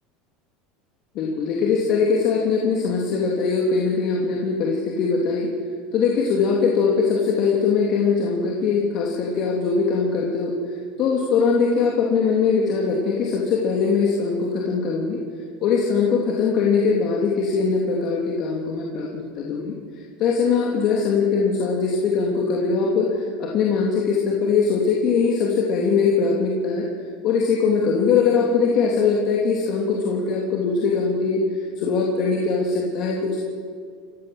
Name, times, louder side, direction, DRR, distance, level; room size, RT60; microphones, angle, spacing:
voice 1, 1.1-5.5 5.9-10.5 11.0-15.2 15.6-19.8 20.2-26.9 27.2-33.4, left 5 dB, 40° left, -1 dB, 3.1 m, -21 dB
29.0 x 15.5 x 7.8 m, 2.1 s
supercardioid pair, 165°, 0 cm